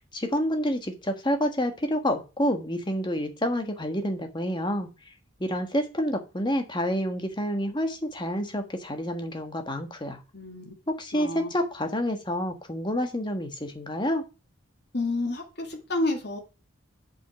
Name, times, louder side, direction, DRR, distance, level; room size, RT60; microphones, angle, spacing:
voice 1, 0.1-4.9 5.4-10.2 10.9-14.2, equal, 20° left, 5 dB, 1.4 m, -28 dB
voice 2, 10.3-10.7 11.1-11.5 14.9-16.4, left 2 dB, 55° left, 2 dB, 2.3 m, -30 dB
8.1 x 5.6 x 5.8 m, 0.30 s
head